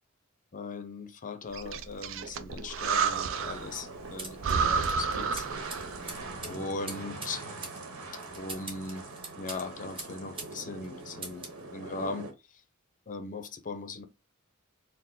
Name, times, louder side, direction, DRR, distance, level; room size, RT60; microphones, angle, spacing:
voice 1, 0.5-5.5 6.4-7.5 8.3-9.1 9.4-12.3 13.1-14.0, left 3 dB, 40° left, 0.6 m, -39 dB
Breathing, 1.5-3.7 4.0-4.1 4.4-6.1, right 6 dB, 65° right, 0.5 m, -30 dB
sound 1, 3.1-12.3, right 2 dB, 80° right, 1.1 m, -43 dB
sound 2, 4.2-10.6 10.8-11.6, right 3 dB, 25° right, 1.1 m, -44 dB
4.4 x 2.1 x 3.6 m
head